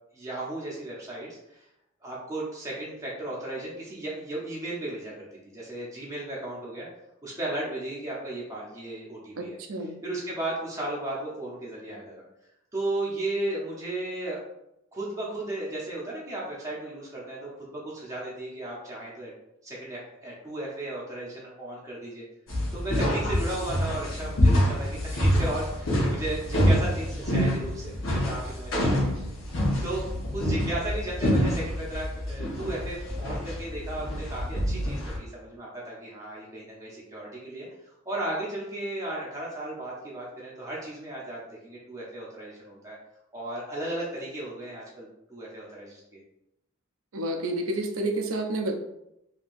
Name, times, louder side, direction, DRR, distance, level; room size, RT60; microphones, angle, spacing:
voice 1, 0.1-1.6 2.0-5.3 5.5-6.9 7.2-9.5 10.0-12.2 12.7-14.4 14.9-19.3 19.6-22.2 22.7-29.1 29.8-30.1 30.3-37.7 38.0-43.0 43.3-46.2, right 1 dB, 15° right, -6 dB, 0.7 m, -35 dB
voice 2, 9.4-10.0 47.1-48.8, right 1 dB, 80° right, 4 dB, 0.5 m, -30 dB
sound 1, 22.5-35.2, equal, 65° left, 1.0 m, -26 dB
3.3 x 2.8 x 2.6 m, 0.83 s
head